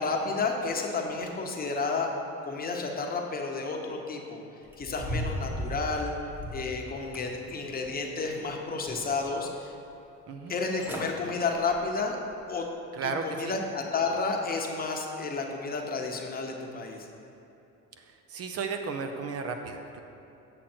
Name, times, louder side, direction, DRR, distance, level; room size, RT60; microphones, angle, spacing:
voice 1, 0.0-2.1 2.4-4.4 4.8-6.1 6.5-9.7 10.5-12.2 12.5-12.7 13.0-17.1, left 4 dB, 30° left, 2 dB, 0.9 m, -31 dB
sound 1, 4.7-6.7 7.1-8.0 8.4-9.2 9.6-9.7 10.5-10.6 10.8-11.1 11.6-11.8 12.3-12.4, equal, 5° right, 1.0 m, -36 dB
voice 2, 12.9-13.6 18.0-20.0, right 4 dB, 55° right, 6 dB, 0.7 m, -34 dB
7.7 x 6.3 x 4.4 m, 2.9 s
cardioid pair, 125°, 29 cm